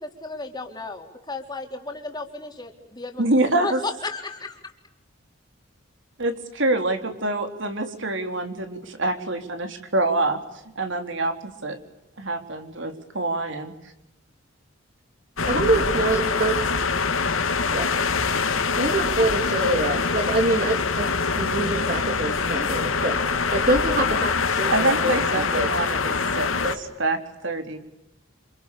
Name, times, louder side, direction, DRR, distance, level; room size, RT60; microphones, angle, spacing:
voice 1, 0.0-3.2 3.6-4.7, left 3 dB, 20° left, 3 dB, 4.0 m, -34 dB
voice 2, 3.2-3.8 6.2-10.4 10.8-11.8 12.2-13.7 24.7-26.1 26.3-26.5 27.0-27.2 27.4-27.8, right 2 dB, 60° right, 6 dB, 3.8 m, -25 dB
sound 1, 15.4-26.8, left 4 dB, 75° left, 2.3 m, -24 dB
voice 3, 15.4-16.5 17.7-17.9 18.8-21.1 21.4-23.2 23.5-25.7 26.0-26.1 26.6-26.8, right 2 dB, 40° right, 3 dB, 3.0 m, -25 dB
29.0 x 28.0 x 7.0 m, 0.88 s
head